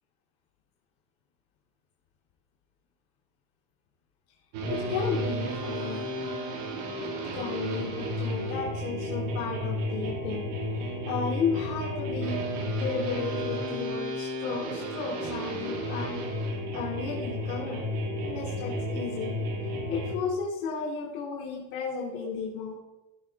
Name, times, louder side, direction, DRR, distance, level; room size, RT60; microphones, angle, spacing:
sound 1, 4.5-20.1, equal, 70° right, 3.2 m, -32 dB
voice 1, 4.7-6.1 7.1-10.5 10.7-12.4 12.7-17.8 18.1-19.4 19.9-22.7, left 5 dB, 85° left, -3 dB, 2.9 m, -34 dB
16.0 x 6.9 x 3.6 m, 1.0 s
supercardioid pair, 115°, 40 cm